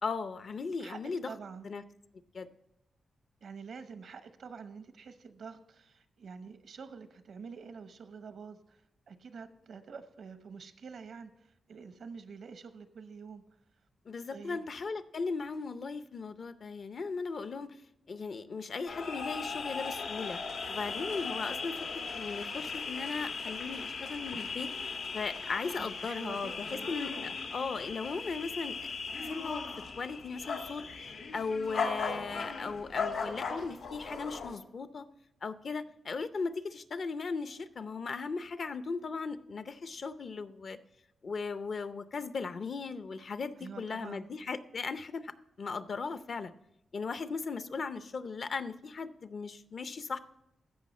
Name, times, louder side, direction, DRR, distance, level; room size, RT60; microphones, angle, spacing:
voice 1, 0.0-1.3 1.6-1.8 2.3-2.5 14.1-17.8 18.1-20.4 20.7-21.8 22.1-24.7 25.1-28.9 29.2-29.7 30.0-30.8 31.3-35.0 35.4-40.8 41.2-45.3 45.6-46.5 46.9-50.2, left 4 dB, 55° left, 12 dB, 0.6 m, -37 dB
voice 2, 1.2-1.7 3.4-8.8 9.1-13.4 14.3-14.7 25.8-26.9 43.6-44.3, right 5 dB, 75° right, 10 dB, 0.8 m, -47 dB
sound 1, 18.9-34.6, left 4 dB, 85° left, 1.2 m, -38 dB
15.0 x 5.5 x 4.2 m, 0.83 s
cardioid pair, 95°, 0 cm